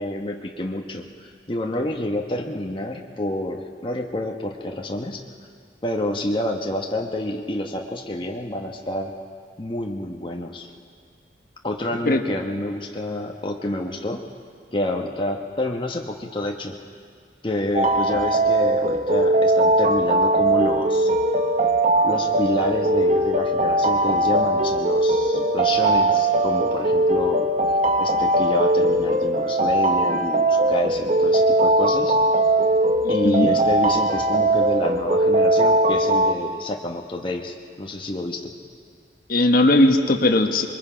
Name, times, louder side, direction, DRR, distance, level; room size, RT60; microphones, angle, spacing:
voice 1, 0.0-5.2 5.8-9.1 9.6-10.7 11.6-14.2 14.7-16.8 17.4-21.1 22.0-27.5 28.0-32.2 33.1-38.6, left 1 dB, 30° left, 1 dB, 1.1 m, -28 dB
sound 1, 17.7-36.3, right 1 dB, 40° right, 0.9 m, -20 dB
voice 2, 33.0-33.5 39.3-40.7, left 1 dB, 50° left, 5 dB, 1.2 m, -18 dB
27.0 x 22.0 x 5.1 m, 2.1 s
head